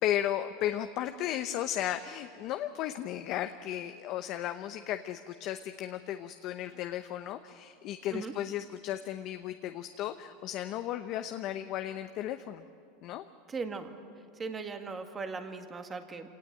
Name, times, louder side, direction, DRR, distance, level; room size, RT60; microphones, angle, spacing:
voice 1, 0.0-12.6 13.0-13.2, left 12 dB, 45° left, 8 dB, 0.8 m, -35 dB
voice 2, 13.5-14.0 14.4-16.3, right 4 dB, 20° right, 6 dB, 1.8 m, -38 dB
26.5 x 18.0 x 9.0 m, 2.5 s
supercardioid pair, 140°, 0 cm